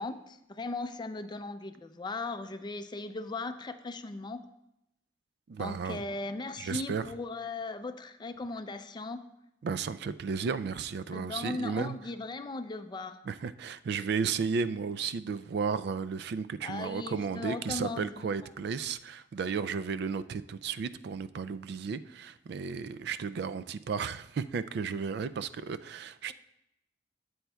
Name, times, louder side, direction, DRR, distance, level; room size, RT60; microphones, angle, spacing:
voice 1, 0.0-4.4 5.6-9.2 11.1-13.2 16.6-18.3, left 3 dB, 25° left, 10 dB, 0.4 m, -38 dB
voice 2, 5.5-6.0 6.6-7.0 9.6-12.0 13.2-26.3, right 5 dB, 65° right, 13 dB, 0.3 m, -34 dB
12.5 x 7.8 x 2.3 m, 0.83 s
head